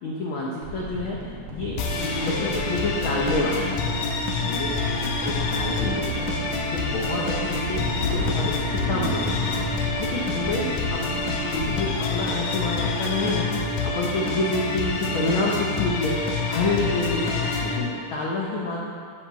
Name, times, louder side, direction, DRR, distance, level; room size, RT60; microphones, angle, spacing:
voice 1, 0.0-3.9 4.5-16.2 16.5-18.8, left 2 dB, 70° left, -4 dB, 1.2 m, -29 dB
sound 1, 0.6-13.1 13.4-13.5, right 1 dB, 60° right, 2.2 m, -37 dB
sound 2, 0.9-16.8 17.1-17.7, left 1 dB, 30° left, 2.3 m, -38 dB
sound 3, 1.8-17.8, left 3 dB, 85° left, 2.6 m, -27 dB
8.3 x 5.3 x 7.5 m, 2.2 s
omnidirectional pair, 3.6 m